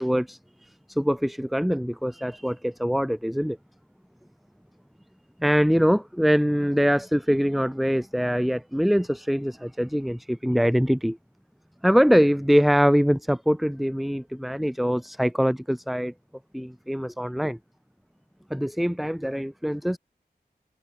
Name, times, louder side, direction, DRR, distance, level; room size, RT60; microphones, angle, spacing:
voice 1, 0.0-3.6 5.4-11.2 11.8-16.1 16.5-17.6 18.5-20.0, equal, ahead, 1.5 m, -23 dB
wide cardioid pair, 65°, 17 cm